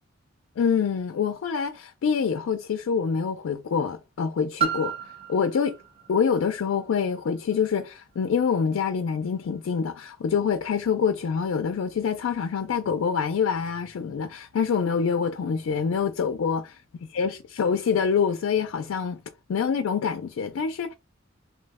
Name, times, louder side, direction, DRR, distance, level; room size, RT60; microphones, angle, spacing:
voice 1, 0.6-4.9 5.3-5.8 6.1-16.6 17.1-19.2 19.5-20.9, left 6 dB, 85° left, 0.4 m, -26 dB
Piano, 4.6-10.0 10.8-10.9, right 9 dB, 30° right, 0.7 m, -35 dB
2.8 x 2.0 x 3.4 m
head